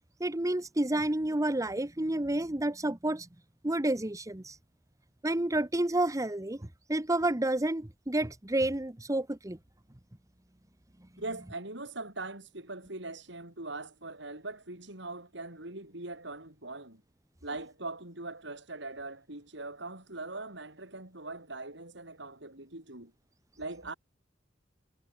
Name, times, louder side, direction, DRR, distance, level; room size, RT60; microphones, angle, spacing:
voice 1, 0.2-3.3 3.6-4.6 5.2-9.6, right 1 dB, 15° right, 1.1 m, -30 dB
voice 2, 11.2-17.0 17.4-23.1 23.6-23.9, right 2 dB, 65° right, 7.6 m, -41 dB
head